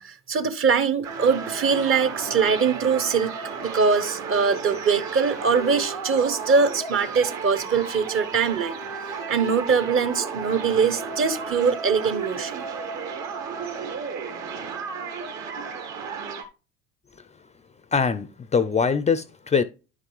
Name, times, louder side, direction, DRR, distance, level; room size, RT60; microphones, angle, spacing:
voice 1, 0.0-8.8 9.3-12.6, right 5 dB, 40° right, 1.1 m, -22 dB
sound 1, 1.0-16.4, right 5 dB, 55° right, 1.8 m, -33 dB
voice 2, 17.9-19.6, left 5 dB, 20° left, 0.5 m, -22 dB
10.5 x 5.7 x 3.2 m
hypercardioid pair, 70°, 33 cm